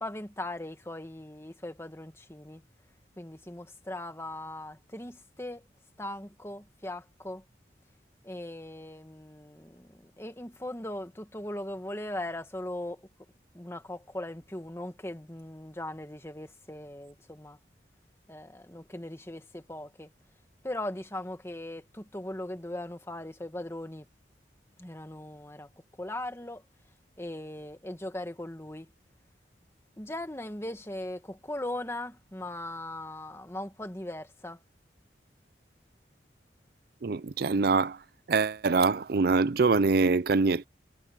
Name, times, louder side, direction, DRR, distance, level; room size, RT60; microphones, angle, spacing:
voice 1, 0.0-2.6 3.2-5.7 6.0-7.4 8.2-13.1 13.5-17.6 18.3-20.1 20.6-24.1 24.8-25.7 26.0-26.6 27.2-28.9 30.0-34.6, left 1 dB, 15° left, 1.7 m, -39 dB
voice 2, 37.0-38.0 38.3-40.7, right 4 dB, 55° right, 0.5 m, -24 dB
head